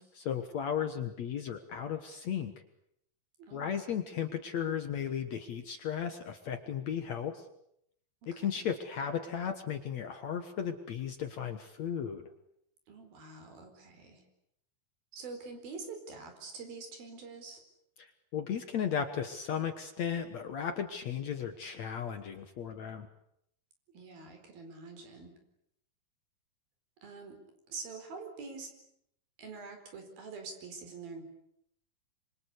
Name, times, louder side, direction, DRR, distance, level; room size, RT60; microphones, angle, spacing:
voice 1, 0.0-2.5 3.5-7.4 8.3-12.3 18.0-18.1 18.3-23.1, left 8 dB, 55° left, 8 dB, 2.2 m, -35 dB
voice 2, 3.4-3.8 8.3-8.6 12.9-14.2 15.1-17.6 23.9-25.3 27.0-27.4 27.7-28.7 29.4-31.2, right 4 dB, 70° right, 5 dB, 6.3 m, -45 dB
26.0 x 25.5 x 8.3 m, 0.74 s
omnidirectional pair, 4.5 m